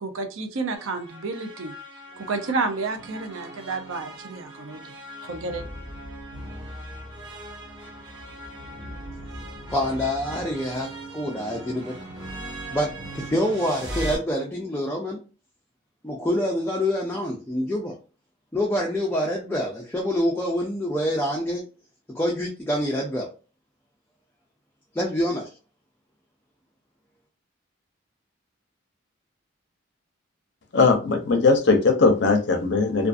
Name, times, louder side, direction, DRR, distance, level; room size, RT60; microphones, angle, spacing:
voice 1, 0.0-1.7 2.3-4.8 5.2-5.6, right 3 dB, 70° right, 0.5 m, -30 dB
sound 1, 0.8-14.2, right 1 dB, 20° right, 0.9 m, -39 dB
voice 2, 9.7-12.0 12.7-15.2 16.0-17.9 18.5-21.6 22.1-23.3 24.9-25.5, equal, 10° left, 0.3 m, -26 dB
voice 3, 30.7-33.1, left 4 dB, 55° left, 0.6 m, -19 dB
2.4 x 2.4 x 2.4 m
head